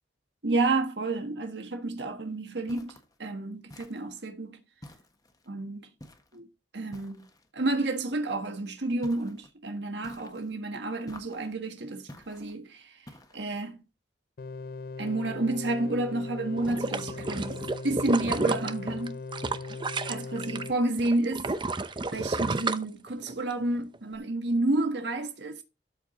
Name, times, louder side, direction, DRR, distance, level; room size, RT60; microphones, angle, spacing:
voice 1, 0.4-2.9 3.2-4.6 5.5-5.9 6.3-6.5 6.7-7.3 7.5-12.9 13.3-13.8 15.0-19.2 20.1-21.5 22.1-25.6, right 2 dB, 75° right, 1.5 m, -30 dB
sound 1, 2.7-3.2 3.7-4.3 4.8-5.5 6.0-6.4 6.9-7.5 9.0-9.5 10.0-10.6 11.1-11.6 12.1-12.6 13.1-13.6, left 1 dB, 20° left, 1.4 m, -50 dB
sound 2, 14.4-20.7, left 4 dB, 55° left, 0.5 m, -39 dB
sound 3, 16.6-20.7 21.0-23.5 23.9-24.0, right 3 dB, 25° right, 0.6 m, -31 dB
13.0 x 4.7 x 3.9 m
head